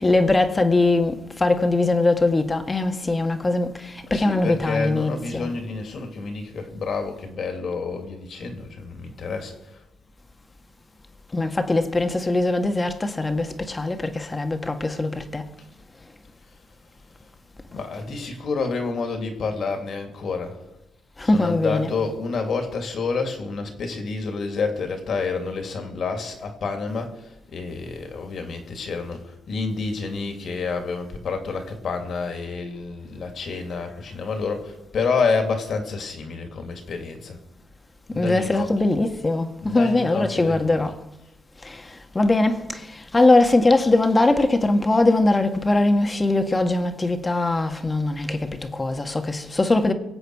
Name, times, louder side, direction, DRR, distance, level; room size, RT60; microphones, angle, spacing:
voice 1, 0.0-5.5 11.3-15.5 21.2-22.0 38.1-41.0 41.6-49.9, left 2 dB, 20° left, 1.6 m, -21 dB
voice 2, 4.1-9.8 17.7-20.6 21.2-37.4 38.1-38.7 39.6-40.8, left 4 dB, 55° left, 2.7 m, -29 dB
24.0 x 8.0 x 4.8 m
cardioid pair, 90°, 0 cm